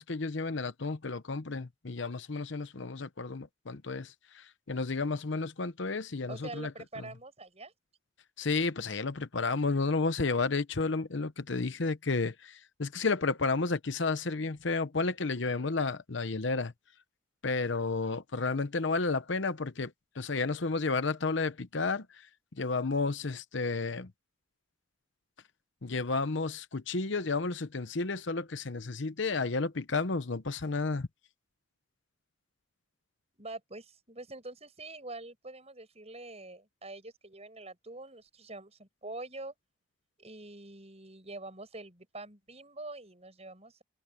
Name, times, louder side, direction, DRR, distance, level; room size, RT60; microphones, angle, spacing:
voice 1, 0.0-4.1 4.7-6.7 8.4-16.7 17.4-19.9 20.2-22.1 22.6-24.1 25.8-31.1, left 3 dB, 65° left, 0.9 m, -31 dB
voice 2, 6.3-7.7 33.4-39.5 40.2-43.8, right 2 dB, 30° right, 7.4 m, -45 dB
head